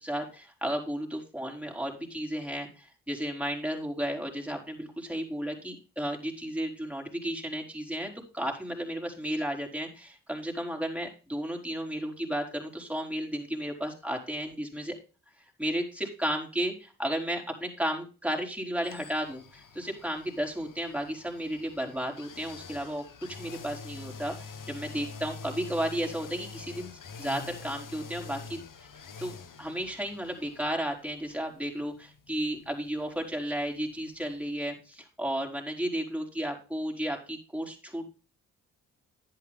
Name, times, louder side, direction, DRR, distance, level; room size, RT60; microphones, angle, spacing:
voice 1, 0.0-15.0 15.6-23.0 23.4-26.9 27.2-28.6 29.2-38.1, equal, 5° right, 2 dB, 4.8 m, -33 dB
sound 1, 18.8-34.6 34.9-35.0, left 5 dB, 55° left, 1.5 m, -46 dB
11.0 x 8.9 x 3.7 m, 0.35 s
hypercardioid pair, 40°, 38 cm